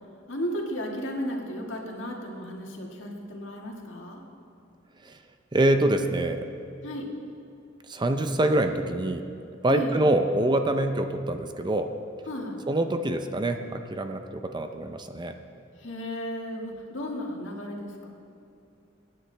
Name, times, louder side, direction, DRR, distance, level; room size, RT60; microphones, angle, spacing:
voice 1, 0.3-4.2 6.8-7.1 9.7-10.0 12.3-12.6 15.8-18.1, equal, 70° left, 0 dB, 1.9 m, -34 dB
voice 2, 5.5-6.5 7.9-9.3 9.6-11.9 12.7-15.4, right 1 dB, 25° right, 7 dB, 0.6 m, -25 dB
25.0 x 9.7 x 3.4 m, 2.6 s
head